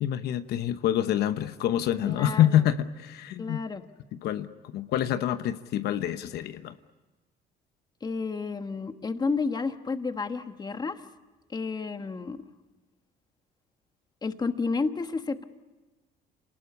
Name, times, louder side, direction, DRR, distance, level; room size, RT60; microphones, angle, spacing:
voice 1, 0.0-3.6 4.2-6.7, left 11 dB, 75° left, 10 dB, 1.0 m, -26 dB
voice 2, 2.0-2.6 3.4-3.8 8.0-11.1 11.5-12.4 14.2-15.4, left 4 dB, 25° left, 9 dB, 1.3 m, -31 dB
27.0 x 19.0 x 9.8 m, 1.2 s
cardioid pair, 110°, 17 cm